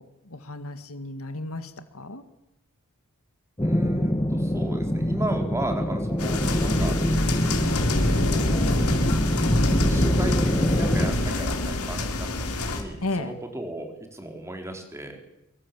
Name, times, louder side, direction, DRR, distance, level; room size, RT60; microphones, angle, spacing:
voice 1, 0.0-2.2 13.0-13.3, left 2 dB, 70° left, 9 dB, 2.0 m, -34 dB
sound 1, 3.6-11.1, equal, 15° left, 1.3 m, -25 dB
voice 2, 3.6-7.0 8.0-8.9 9.9-12.3 12.6-15.2, right 1 dB, 15° right, 3 dB, 4.3 m, -35 dB
sound 2, 6.2-12.8, left 1 dB, 85° left, 4.0 m, -25 dB
24.5 x 23.5 x 7.8 m, 0.88 s
head